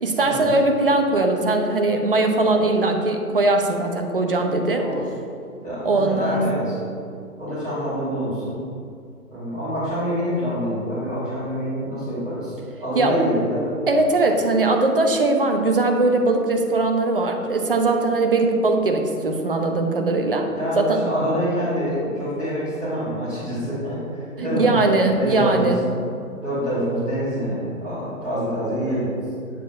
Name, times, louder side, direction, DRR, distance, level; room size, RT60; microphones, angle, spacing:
voice 1, 0.0-4.8 5.8-6.4 13.0-13.3 13.9-20.5 20.8-21.0 24.4-25.8, right 2 dB, 40° right, 3 dB, 0.5 m, -20 dB
voice 2, 5.6-6.7 7.4-8.6 9.3-13.8 20.5-24.7 25.1-25.8 26.3-29.1, equal, ahead, -19 dB, 0.7 m, -26 dB
7.5 x 2.8 x 5.3 m, 2.3 s
figure-of-eight pair, 140°, 46 cm